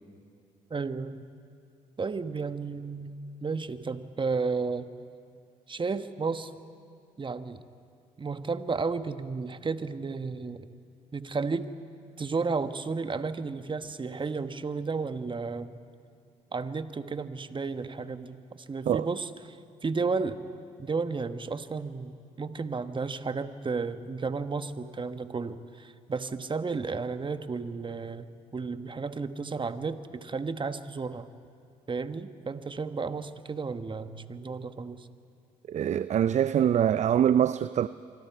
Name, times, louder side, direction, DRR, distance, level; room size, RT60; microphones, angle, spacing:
voice 1, 0.7-1.3 2.0-4.9 5.7-6.5 7.2-7.6 8.2-10.7 11.1-11.7 12.2-15.8 16.5-19.6 19.8-20.4 20.8-31.3 31.9-35.1, right 4 dB, 30° right, 1.2 m, -33 dB
voice 2, 35.7-37.9, right 9 dB, 45° right, 0.5 m, -24 dB
25.0 x 24.5 x 4.8 m
hypercardioid pair, 55°, 17 cm